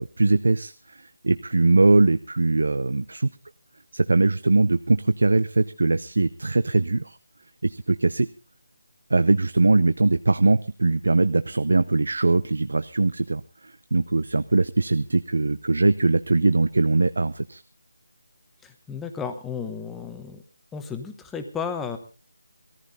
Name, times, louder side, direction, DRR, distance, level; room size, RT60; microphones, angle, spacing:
voice 1, 0.0-3.3 3.9-7.2 7.6-8.3 9.1-17.6, right 3 dB, 70° right, 12 dB, 0.7 m, -21 dB
voice 2, 18.6-20.4 20.7-22.0, left 6 dB, 5° left, 7 dB, 0.9 m, -33 dB
17.5 x 14.5 x 4.0 m, 0.32 s
figure-of-eight pair, 175°, 0 cm